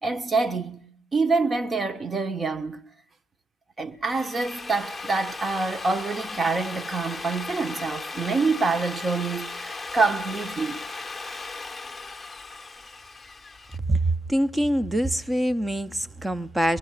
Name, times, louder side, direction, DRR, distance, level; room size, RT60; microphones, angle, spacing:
voice 1, 0.0-2.8 3.8-10.8, right 4 dB, 30° right, 1.3 m, -26 dB
Drill, 3.9-13.8, left 3 dB, 15° left, 1.1 m, -37 dB
voice 2, 13.9-16.8, right 1 dB, 10° right, 0.9 m, -24 dB
23.5 x 22.5 x 6.6 m
hypercardioid pair, 60°, 0 cm